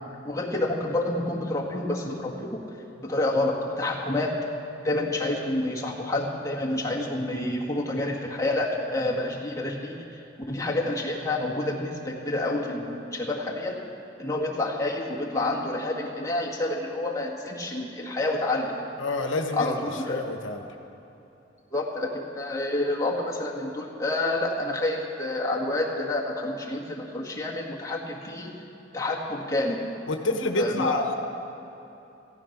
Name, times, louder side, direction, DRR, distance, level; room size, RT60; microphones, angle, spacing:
voice 1, 0.2-2.6 3.0-4.4 4.8-13.8 14.2-18.7 19.5-20.3 21.7-28.5 28.9-29.8 30.6-31.0, left 2 dB, 15° left, -3 dB, 1.8 m, -28 dB
voice 2, 19.0-19.7 20.1-20.6 30.1-31.1, left 2 dB, 85° left, 5 dB, 1.0 m, -27 dB
15.5 x 13.5 x 5.9 m, 2.9 s
head